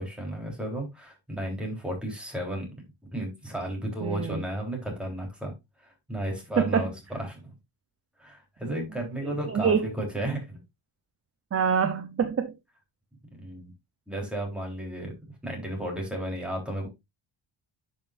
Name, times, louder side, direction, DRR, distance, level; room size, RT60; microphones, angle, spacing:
voice 1, 0.0-2.7 3.1-5.5 5.8-7.5 8.2-10.6 13.4-13.7 14.1-15.1 15.4-16.9, right 1 dB, ahead, 3.5 m, -33 dB
voice 2, 4.0-4.4 6.6-6.9 9.2-9.9 11.5-12.5, right 6 dB, 30° right, 0.6 m, -26 dB
10.5 x 5.6 x 2.5 m
wide cardioid pair, 125°, 50 cm